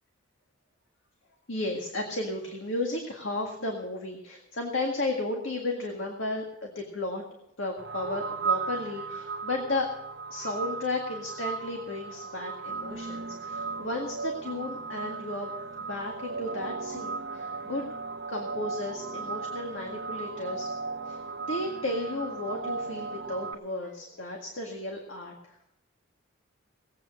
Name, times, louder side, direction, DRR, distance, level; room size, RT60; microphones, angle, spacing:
voice 1, 1.5-7.2 7.6-9.9 10.3-17.9 18.3-20.7 21.0-25.6, left 2 dB, 65° left, 1 dB, 1.9 m, -34 dB
sound 1, 7.8-23.5, right 4 dB, 55° right, 1.1 m, -36 dB
18.5 x 8.6 x 6.3 m, 0.81 s
head